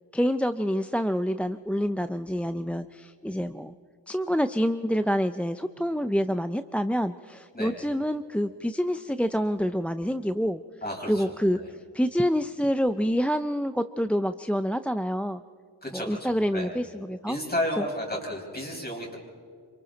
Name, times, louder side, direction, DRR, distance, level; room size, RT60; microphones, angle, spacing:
voice 1, 0.1-3.7 4.1-10.6 11.1-11.6 11.9-15.4 15.9-17.4, equal, 5° left, 10 dB, 0.4 m, -27 dB
voice 2, 10.8-11.7 15.8-16.7 17.3-19.2, left 1 dB, 20° left, -1 dB, 5.5 m, -33 dB
28.0 x 25.5 x 4.0 m, 2.2 s
wide cardioid pair, 60°, 44 cm